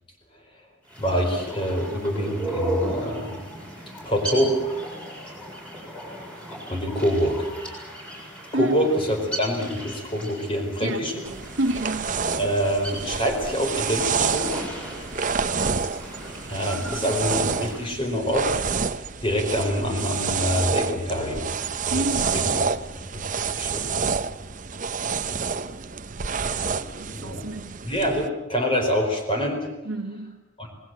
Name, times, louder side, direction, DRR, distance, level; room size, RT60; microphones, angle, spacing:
sound 1, 0.9-17.9, right 1 dB, 5° left, 7.3 m, -36 dB
voice 1, 1.0-3.4 4.0-4.8 6.7-7.5 8.5-11.2 12.4-14.5 16.5-21.5 21.9-22.6 23.1-23.9 27.1-27.5 27.8-29.7 30.6-30.7, equal, 25° left, 4.6 m, -26 dB
sound 2, 11.2-28.3, right 5 dB, 40° right, 0.8 m, -28 dB
voice 2, 11.6-12.2 21.9-22.5 27.0-27.8 29.8-30.4, right 2 dB, 80° right, 1.5 m, -28 dB
27.0 x 20.0 x 7.8 m
head